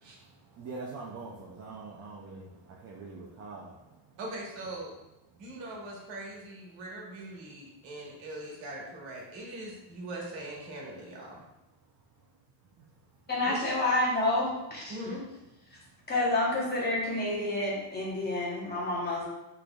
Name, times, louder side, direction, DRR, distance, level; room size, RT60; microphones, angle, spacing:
voice 1, 0.1-3.9 5.3-5.4, right 3 dB, 35° right, -2 dB, 0.5 m, -44 dB
voice 2, 4.2-4.9 5.4-11.4 13.4-13.7 14.9-15.2, right 1 dB, 65° right, -2 dB, 1.5 m, -41 dB
voice 3, 13.3-15.0 15.7-15.8 16.1-19.3, left 2 dB, 20° left, -4 dB, 1.0 m, -29 dB
5.9 x 3.4 x 2.3 m, 0.96 s
cardioid pair, 145°, 48 cm